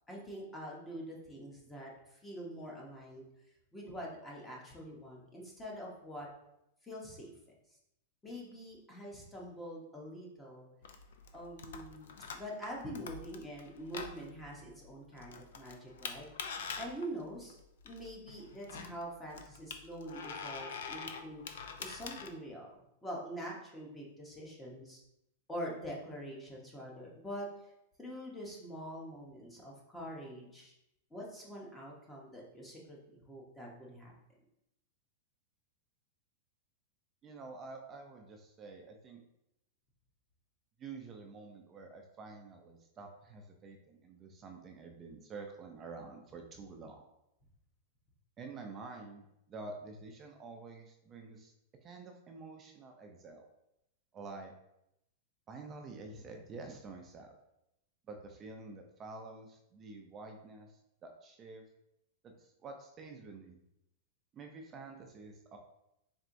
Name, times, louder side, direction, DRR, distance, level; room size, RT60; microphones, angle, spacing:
voice 1, 0.1-3.3 3.7-6.3 6.8-7.3 8.2-10.7 11.3-17.6 17.8-21.4 21.8-22.7 23.0-25.0 25.5-27.7 28.0-30.7 31.1-34.1, equal, 10° left, -3 dB, 0.8 m, -45 dB
sound 1, 10.8-22.3, left 5 dB, 75° left, 0.5 m, -45 dB
voice 2, 37.2-39.2 40.8-47.0 48.4-51.5 51.8-53.5 54.1-54.5 55.5-57.4 58.1-61.6 62.2-63.6 64.3-65.6, right 3 dB, 20° right, 3 dB, 0.4 m, -48 dB
4.3 x 3.5 x 2.6 m, 0.83 s
supercardioid pair, 155°, 0 cm